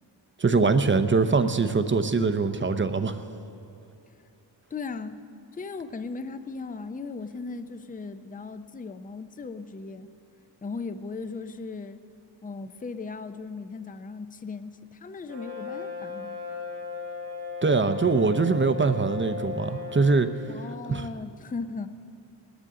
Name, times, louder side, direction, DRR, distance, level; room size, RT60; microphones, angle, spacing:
voice 1, 0.4-3.2 17.6-20.3 20.9-21.1, right 4 dB, 25° right, 10 dB, 0.6 m, -23 dB
voice 2, 4.7-5.2 5.5-10.1 10.6-12.0 12.4-16.4 20.5-21.9, left 4 dB, 20° left, 11 dB, 0.4 m, -37 dB
Brass instrument, 15.3-20.2, left 5 dB, 90° right, 3.0 m, -36 dB
19.5 x 13.0 x 3.7 m, 2.7 s
wide cardioid pair, 105°, 44 cm